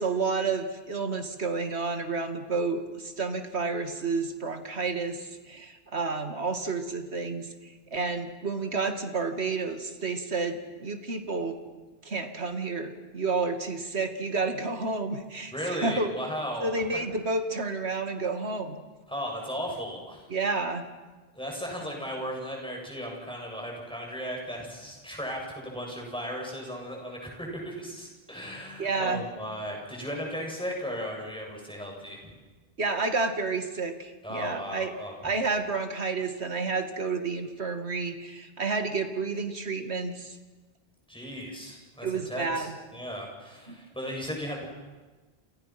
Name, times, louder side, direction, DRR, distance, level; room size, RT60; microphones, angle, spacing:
voice 1, 0.0-11.6 12.0-16.1 16.6-18.8 20.3-20.9 28.8-29.2 32.8-34.9 35.2-40.4 42.0-42.7 43.7-43.8, right 4 dB, 85° right, 7 dB, 2.5 m, -30 dB
voice 2, 15.5-16.7 19.1-20.3 21.3-32.3 34.2-35.1 41.1-44.7, equal, 5° left, 0 dB, 7.2 m, -36 dB
29.0 x 28.0 x 6.0 m, 1.2 s
omnidirectional pair, 1.1 m